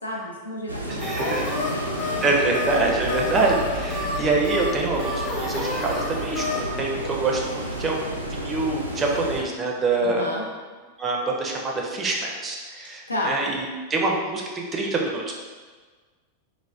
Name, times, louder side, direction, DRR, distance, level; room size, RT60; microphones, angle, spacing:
voice 1, 0.0-2.2 3.0-3.1 3.9-4.1 10.0-10.5 13.1-13.4, left 1 dB, 80° left, -2 dB, 0.4 m, -32 dB
sound 1, 0.7-9.4, right 1 dB, 85° right, 0.3 m, -32 dB
voice 2, 0.9-1.5 2.2-10.3 11.0-15.3, right 3 dB, 20° right, -1 dB, 0.4 m, -25 dB
sound 2, 1.0-6.8, left 2 dB, 30° left, 0.7 m, -31 dB
sound 3, 2.7-7.2, left 1 dB, 60° left, 0.8 m, -38 dB
2.3 x 2.2 x 3.3 m, 1.4 s
figure-of-eight pair, 90°, 0 cm